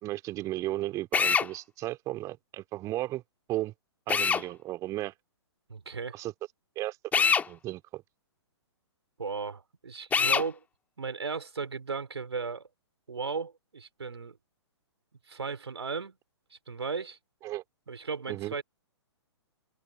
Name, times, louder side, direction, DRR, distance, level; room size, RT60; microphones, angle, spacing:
voice 1, 0.0-3.2 3.5-3.7 4.1-5.1 6.1-6.3 6.7-8.0 17.4-17.6 18.3-18.5, right 16 dB, 20° right, 2.9 m, -35 dB
Drill, 1.1-1.5 4.1-4.4 7.1-7.5 10.1-10.5, left 6 dB, 10° left, 2.0 m, -24 dB
voice 2, 5.7-6.2 9.2-10.6 11.0-12.7 13.1-14.4 15.3-16.2 16.5-17.2 17.9-18.6, right 5 dB, 70° right, 4.2 m, -36 dB
open air
figure-of-eight pair, 120°, 15 cm